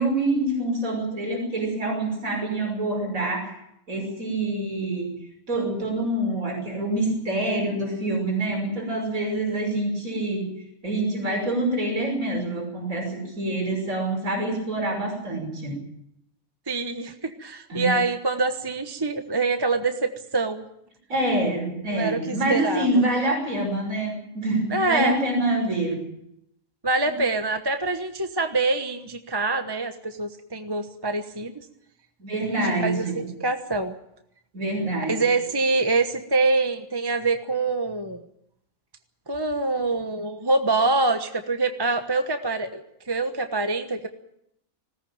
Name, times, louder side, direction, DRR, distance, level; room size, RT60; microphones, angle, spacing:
voice 1, 0.0-3.6 3.9-5.1 5.5-10.5 10.8-15.9 17.7-18.0 21.1-26.1 27.1-27.2 32.2-33.2 34.5-35.2, right 1 dB, 70° right, 1 dB, 6.3 m, -26 dB
voice 2, 16.7-20.6 21.9-22.9 24.7-25.2 26.8-31.5 32.4-33.9 35.1-38.2 39.3-44.1, right 3 dB, 20° right, 6 dB, 1.1 m, -25 dB
20.5 x 17.5 x 8.8 m, 0.77 s
omnidirectional pair, 1.5 m